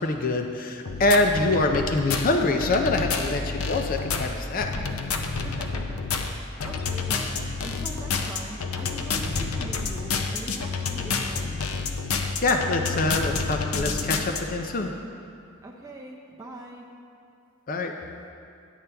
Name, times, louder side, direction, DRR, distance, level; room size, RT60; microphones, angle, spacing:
voice 1, 0.0-4.7 12.4-14.9 17.7-17.9, left 2 dB, 40° left, 4 dB, 0.5 m, -25 dB
sound 1, 0.9-14.4, left 4 dB, 85° left, 0.6 m, -29 dB
voice 2, 5.4-11.6 15.6-16.9, right 1 dB, 15° right, -2 dB, 0.5 m, -42 dB
10.5 x 8.3 x 3.4 m, 2.5 s
head